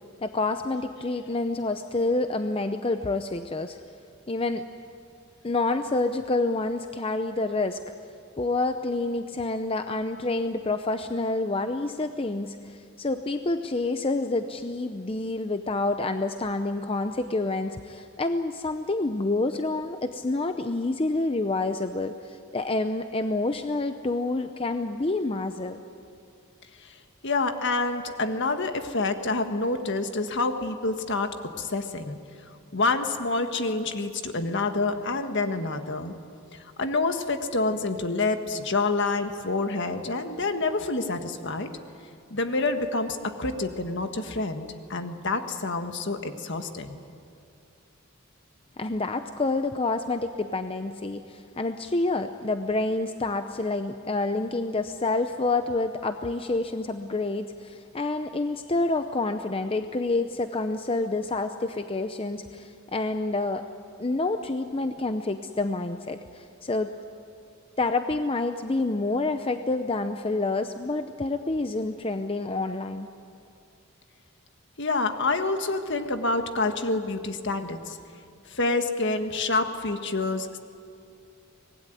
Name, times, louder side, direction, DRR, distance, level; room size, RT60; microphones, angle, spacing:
voice 1, 0.2-3.8 4.3-4.6 5.4-7.8 8.4-25.8 48.8-63.6 64.0-66.9 67.8-73.1, left 2 dB, 25° left, 8 dB, 0.7 m, -28 dB
voice 2, 27.2-32.2 32.7-36.1 36.5-41.7 42.3-47.0 74.8-78.0 78.5-80.6, left 3 dB, 60° left, 7 dB, 1.7 m, -27 dB
25.0 x 19.5 x 9.3 m, 2.5 s
head